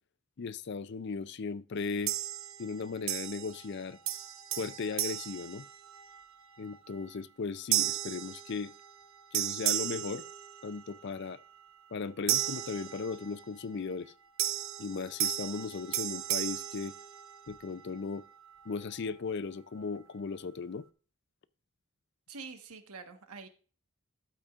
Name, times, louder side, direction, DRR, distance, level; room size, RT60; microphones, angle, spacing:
voice 1, 0.4-2.1 2.6-4.0 4.6-5.6 6.6-8.7 9.3-10.2 10.6-11.4 11.9-14.1 14.8-16.9 17.5-18.2 18.7-20.8, left 4 dB, 50° left, 0.4 m, -37 dB
sound 1, 2.1-2.7 3.1-3.8 4.1-6.2 6.7-7.0 7.7-9.0 9.3-11.0 12.3-13.4 14.4-17.6, right 12 dB, 65° right, 0.9 m, -34 dB
voice 2, 22.3-23.5, right 4 dB, 85° right, 1.3 m, -46 dB
12.5 x 8.2 x 2.4 m
head